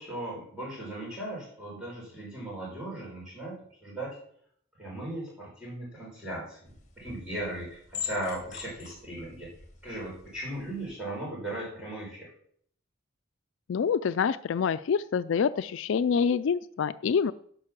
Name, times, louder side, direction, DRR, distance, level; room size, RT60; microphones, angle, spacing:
voice 1, 0.0-4.2 4.8-6.7 7.0-9.5 9.8-12.3, right 1 dB, 5° right, -6 dB, 5.8 m, -37 dB
sound 1, 6.7-10.9, left 7 dB, 35° left, 2.3 m, -43 dB
voice 2, 13.7-17.3, left 6 dB, 65° left, 14 dB, 0.3 m, -26 dB
11.0 x 5.8 x 7.5 m, 0.62 s
head